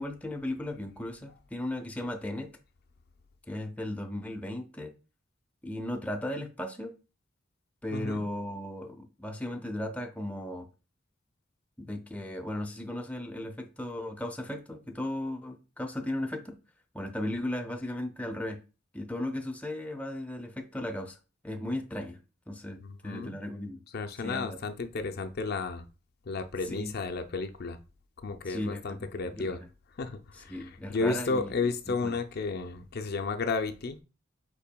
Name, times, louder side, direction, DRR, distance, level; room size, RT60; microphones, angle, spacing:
voice 1, 0.0-2.6 3.5-4.9 5.6-6.9 7.8-10.7 11.8-16.6 16.9-18.6 18.9-21.2 21.4-22.2 22.5-23.8 24.2-24.6 26.7-26.9 28.5-28.8 29.4-29.7 30.5-31.6 31.9-32.2, left 1 dB, 5° left, 0.6 m, -36 dB
voice 2, 7.9-8.2 22.8-23.4 23.9-25.8 26.3-27.8 28.2-29.6 30.0-34.0, left 4 dB, 55° left, 0.5 m, -33 dB
5.7 x 4.2 x 2.2 m
head